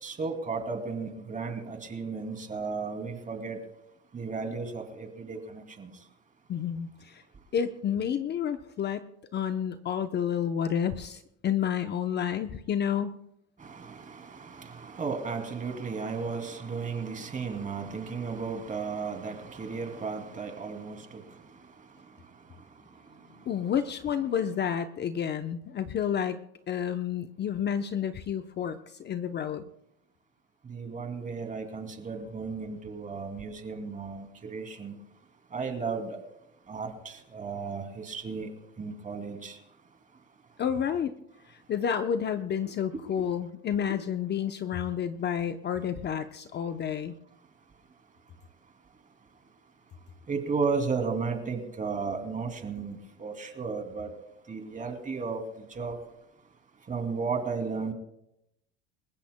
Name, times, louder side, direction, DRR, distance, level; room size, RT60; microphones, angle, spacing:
voice 1, 0.0-3.6 4.1-5.9 13.6-21.4 30.6-35.0 35.5-36.2 36.7-38.5 38.8-39.6 43.2-43.3 43.9-44.0 50.3-54.1 54.5-56.0 56.9-57.9, right 5 dB, 25° right, 5 dB, 2.6 m, -34 dB
voice 2, 6.5-7.2 7.5-13.2 23.4-26.4 26.7-29.6 40.6-41.1 41.5-47.2, left 8 dB, 30° left, 8 dB, 0.7 m, -30 dB
29.0 x 15.5 x 2.2 m, 0.81 s
supercardioid pair, 120°, 33 cm